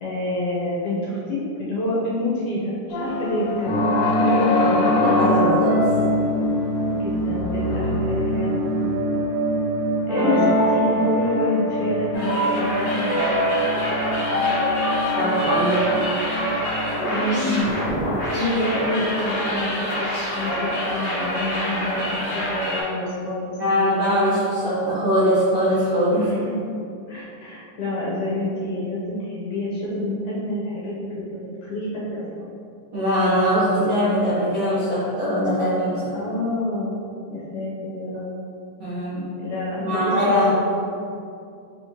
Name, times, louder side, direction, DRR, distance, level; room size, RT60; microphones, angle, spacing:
voice 1, 0.0-3.7 4.2-5.0 6.9-8.7 10.1-14.0 17.1-20.1 20.4-22.3 22.7-23.5 26.1-26.5 27.1-32.5 36.1-37.0 37.3-38.4 39.4-40.5, left 1 dB, 70° left, -7 dB, 2.1 m, -27 dB
sound 1, 2.9-8.9, left 3 dB, 90° left, 2.3 m, -25 dB
sound 2, 3.6-17.6, equal, 60° right, 1.7 m, -24 dB
voice 2, 4.6-5.8 10.1-10.5 15.1-16.0 23.6-26.2 32.9-36.0 38.8-39.3 39.8-40.5, equal, 85° right, -12 dB, 1.2 m, -21 dB
sound 3, 12.1-22.8, equal, 55° left, 1.6 m, -27 dB
5.5 x 3.4 x 2.8 m, 2.5 s
omnidirectional pair, 3.9 m